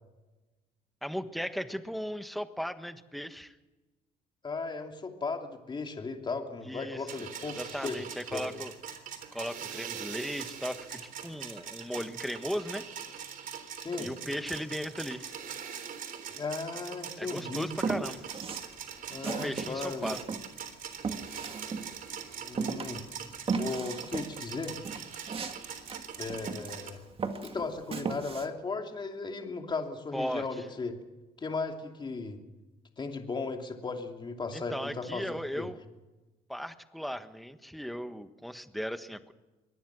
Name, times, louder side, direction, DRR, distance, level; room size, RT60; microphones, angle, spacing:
voice 1, 1.0-3.5 6.6-7.0 7.4-8.7 9.3-12.9 14.0-15.3 17.2-18.3 19.2-20.2 30.1-30.6 34.5-35.8 36.5-39.3, equal, ahead, 9 dB, 1.4 m, -37 dB
voice 2, 4.4-8.0 8.3-8.5 13.8-14.1 16.3-17.7 19.1-20.2 22.4-23.0 23.5-24.8 26.2-27.0 27.4-30.9 31.4-32.4 33.0-35.7, left 4 dB, 25° left, 3 dB, 2.9 m, -36 dB
sound 1, 7.1-26.9, right 8 dB, 55° right, 3.6 m, -42 dB
Walk footsteps, 17.8-18.7 19.1-22.2 22.6-26.8 27.2-28.5, right 5 dB, 35° right, 2.1 m, -36 dB
23.5 x 18.5 x 6.2 m, 1.1 s
cardioid pair, 110°, 17 cm